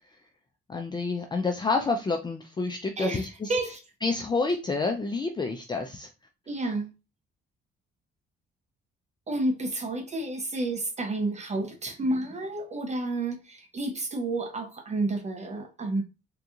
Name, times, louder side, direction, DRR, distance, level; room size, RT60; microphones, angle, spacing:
voice 1, 0.7-3.5 4.0-6.1, left 3 dB, 20° left, 0.4 m, -28 dB
voice 2, 3.0-3.8 6.5-6.9 9.3-16.0, right 2 dB, 35° right, 0.7 m, -30 dB
3.7 x 2.8 x 2.4 m
cardioid pair, 90°, 20 cm